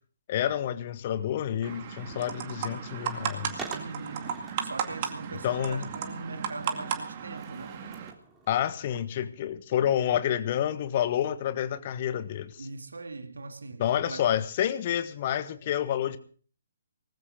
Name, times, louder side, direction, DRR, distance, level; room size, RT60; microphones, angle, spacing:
voice 1, 0.3-3.6 5.4-5.9 8.5-12.7 13.8-16.2, left 10 dB, 35° left, 1.3 m, -29 dB
sound 1, 1.6-8.1, right 8 dB, 35° right, 2.2 m, -35 dB
Skateboard, 3.5-9.0, right 4 dB, 10° right, 3.3 m, -47 dB
voice 2, 3.7-7.8 12.6-14.3, right 3 dB, 65° right, 2.2 m, -41 dB
20.0 x 15.0 x 3.9 m
figure-of-eight pair, 135°, 0 cm